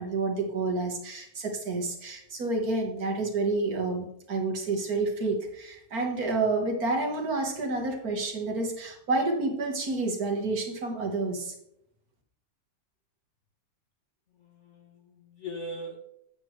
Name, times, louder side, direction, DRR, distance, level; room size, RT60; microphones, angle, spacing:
voice 1, 0.0-11.5, right 3 dB, 60° right, 2 dB, 1.8 m, -29 dB
voice 2, 14.4-16.0, equal, 50° left, 3 dB, 1.1 m, -40 dB
8.6 x 7.8 x 3.2 m, 0.74 s
omnidirectional pair, 1.9 m